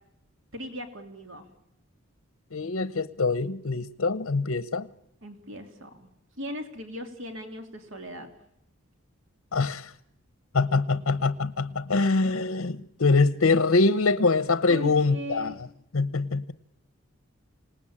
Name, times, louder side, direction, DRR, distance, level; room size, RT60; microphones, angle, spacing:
voice 1, 0.5-1.4 5.2-6.1 6.4-8.3 14.7-15.6, left 1 dB, 70° right, 3.0 m, -38 dB
voice 2, 2.5-4.9 9.5-9.9 10.5-15.5 15.9-16.5, left 3 dB, 75° left, 0.9 m, -24 dB
27.0 x 19.0 x 8.7 m
head